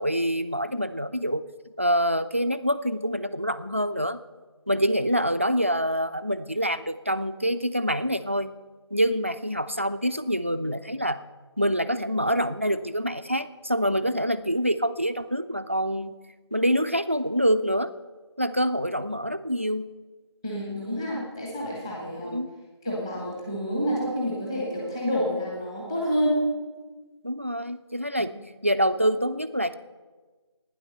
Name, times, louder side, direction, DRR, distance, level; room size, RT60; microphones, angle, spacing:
voice 1, 0.0-1.5 1.8-4.2 4.7-8.5 8.9-11.2 11.6-16.2 16.5-17.9 18.4-19.9 22.2-22.5 27.2-28.3 28.6-29.8, equal, 25° right, 12 dB, 0.4 m, -26 dB
voice 2, 20.4-22.4 22.8-26.4, equal, 10° left, -3 dB, 1.4 m, -28 dB
12.0 x 9.8 x 6.5 m, 1.3 s
figure-of-eight pair, 170°, 15 cm